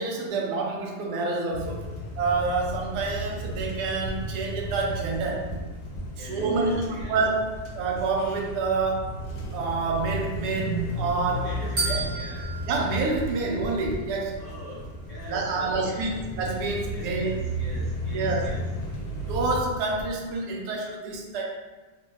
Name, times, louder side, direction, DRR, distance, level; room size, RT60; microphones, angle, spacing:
voice 1, 0.0-1.8 2.2-5.5 6.2-9.2 9.5-11.5 11.9-12.0 12.7-14.4 15.3-17.3 18.1-18.5 19.2-21.4, right 3 dB, 75° right, 0 dB, 0.9 m, -28 dB
sound 1, 1.5-19.6, equal, 75° left, 1.1 m, -35 dB
sound 2, 2.7-20.4, equal, 5° left, 0.9 m, -41 dB
voice 2, 6.1-7.2 11.4-12.6 14.4-16.1 16.9-18.6, left 1 dB, 55° left, -8 dB, 0.8 m, -43 dB
sound 3, 11.8-14.0, right 3 dB, 50° right, 0.8 m, -33 dB
3.2 x 2.1 x 3.1 m, 1.3 s
omnidirectional pair, 2.1 m